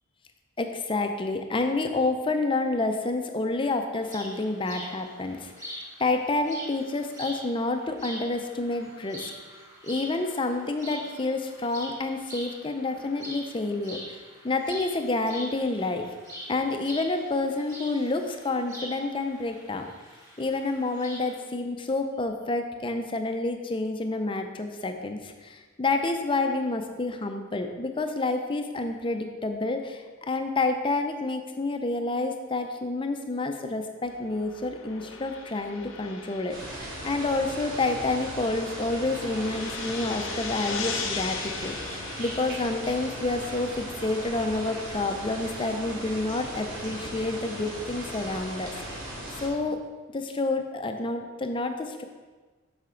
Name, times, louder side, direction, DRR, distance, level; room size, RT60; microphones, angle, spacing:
voice 1, 0.6-9.3 9.8-14.2 14.4-16.1 16.5-19.9 20.4-49.0 49.4-49.8 50.1-52.0, left 2 dB, 25° left, 5 dB, 0.5 m, -29 dB
sound 1, 4.0-21.4, equal, 15° right, 1.8 m, -44 dB
sound 2, 34.1-43.6, left 5 dB, 65° left, 0.8 m, -39 dB
sound 3, 36.5-49.5, right 1 dB, 65° right, 2.3 m, -38 dB
7.6 x 5.7 x 3.8 m, 1.3 s
head